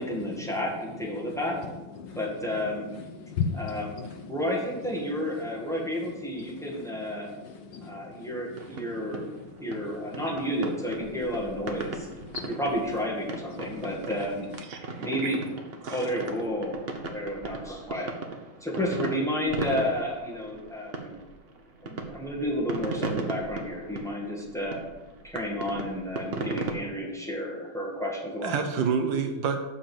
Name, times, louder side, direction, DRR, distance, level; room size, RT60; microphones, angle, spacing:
voice 1, 0.0-1.6 2.1-2.9 3.5-3.9 4.3-7.3 7.8-9.2 9.6-12.1 12.5-14.5 15.0-15.4 15.9-16.8 17.1-18.1 18.6-21.2 21.8-24.8 25.2-28.6, equal, ahead, -4 dB, 1.7 m, -31 dB
voice 2, 1.6-2.7 3.0-4.4 5.0-5.1 5.6-5.7 6.3-6.7 7.1-8.8 9.0-10.0 10.3-10.4 11.2-11.3 11.8-12.6 13.5-14.0, left 6 dB, 65° left, 5 dB, 1.3 m, -38 dB
sound 1, 8.6-26.7, right 3 dB, 55° right, 0.6 m, -37 dB
voice 3, 14.6-15.4 15.8-16.0 28.4-29.6, right 6 dB, 70° right, 6 dB, 1.4 m, -29 dB
7.0 x 5.7 x 7.1 m, 1.1 s
omnidirectional pair, 2.3 m